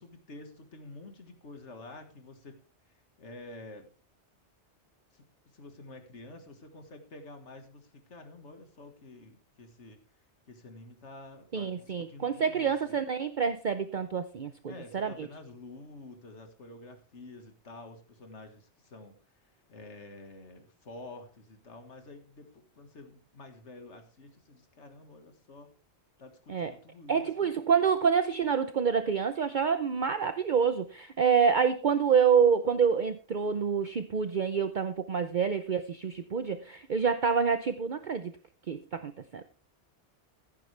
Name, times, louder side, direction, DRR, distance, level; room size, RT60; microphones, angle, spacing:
voice 1, 0.0-2.6 2.9-3.9 5.1-10.0 10.5-13.0 14.7-25.7 26.2-27.5, left 2 dB, 90° left, 6 dB, 2.0 m, -49 dB
voice 2, 11.5-15.3 26.5-26.7 27.1-38.3 38.7-39.4, right 6 dB, 50° right, 10 dB, 0.8 m, -27 dB
16.0 x 9.7 x 3.3 m, 0.36 s
omnidirectional pair, 1.2 m